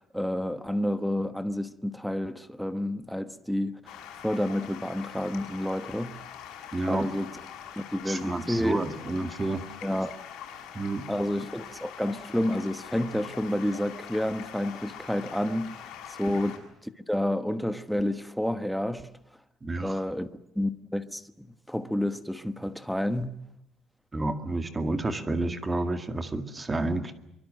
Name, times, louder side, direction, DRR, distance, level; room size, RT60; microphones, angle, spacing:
voice 1, 0.0-6.2 6.9-7.3 7.8-8.8 9.8-10.2 11.1-15.8 16.1-16.6 17.1-19.1 19.8-20.3 20.5-23.4, left 1 dB, ahead, 1.2 m, -30 dB
Stream, 3.9-16.6, left 9 dB, 80° left, 7.2 m, -44 dB
voice 2, 6.7-7.1 8.1-9.6 10.7-11.0 19.6-20.0 24.1-27.1, right 2 dB, 15° right, 2.1 m, -30 dB
24.5 x 24.0 x 7.7 m
cardioid pair, 170°, 0 cm